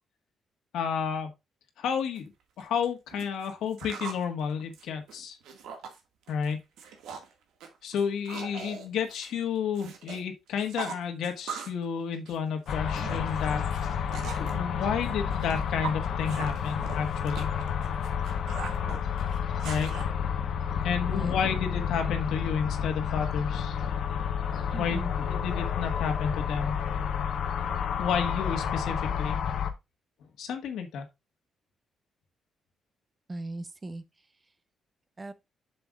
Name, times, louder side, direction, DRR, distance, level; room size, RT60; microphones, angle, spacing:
voice 1, 0.7-1.3 1.8-2.2 2.6-5.4 6.3-6.6 7.8-13.7 14.4-17.5 19.6-19.9 20.8-23.8 24.8-26.8 28.0-29.4 30.4-31.0, left 7 dB, 80° left, 1.5 m, -31 dB
sound 1, 2.2-2.3 2.6-4.2 4.6-6.0 6.3-6.5 6.8-7.3 7.6-10.2 10.5-11.8 12.1-14.5 15.0-20.0, right 6 dB, 90° right, 1.8 m, -41 dB
sound 2, 12.7-29.7, left 7 dB, 65° left, 1.0 m, -30 dB
voice 2, 21.0-21.4 24.7-25.1 33.3-34.0 35.2-35.3, right 2 dB, 20° right, 0.9 m, -38 dB
7.8 x 6.8 x 2.4 m
cardioid pair, 120°, 0 cm